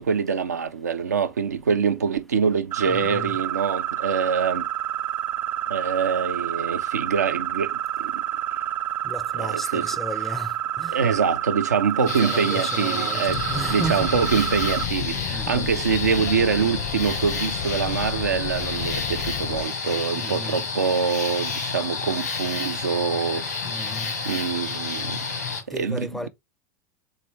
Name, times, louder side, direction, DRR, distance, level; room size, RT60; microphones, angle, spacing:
voice 1, 0.0-4.7 5.7-8.2 9.4-9.9 10.9-23.5 24.3-26.3, right 6 dB, 90° right, 0.5 m, -25 dB
sound 1, 2.7-14.8, right 12 dB, 50° right, 0.7 m, -29 dB
voice 2, 2.9-3.4 9.0-11.0 12.0-14.5 15.2-15.7 20.1-20.6 23.6-24.2 25.7-26.3, equal, 5° left, 0.4 m, -34 dB
sound 2, 12.1-25.6, left 4 dB, 90° left, 1.6 m, -30 dB
sound 3, 13.3-19.7, left 9 dB, 60° left, 0.6 m, -33 dB
4.1 x 3.4 x 3.2 m
hypercardioid pair, 90°, 9 cm